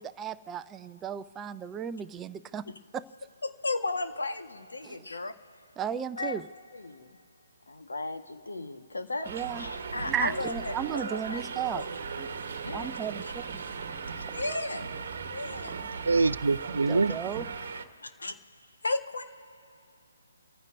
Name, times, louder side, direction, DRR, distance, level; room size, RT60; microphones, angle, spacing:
voice 1, 0.0-2.6 2.9-3.0 4.8-5.0 5.8-6.4 9.3-9.7 10.0-11.8 12.2-12.3 12.7-13.6 16.9-17.5, right 8 dB, 15° right, 12 dB, 0.4 m, -34 dB
voice 2, 3.4-5.3 6.2-6.4 6.7-7.1 7.7-9.3 9.6-11.4 11.7-11.9 12.3-12.4 12.6-13.0 13.2-13.3 14.1-15.0 15.3-15.9 18.0-18.3 18.8-19.2, left 2 dB, 70° left, 5 dB, 1.5 m, -35 dB
Subway metro underground, 9.2-17.9, right 5 dB, 50° right, 1.2 m, -38 dB
voice 3, 16.1-17.1, right 3 dB, 70° right, 17 dB, 0.5 m, -24 dB
30.0 x 15.0 x 2.7 m, 2.6 s
figure-of-eight pair, 140°, 0 cm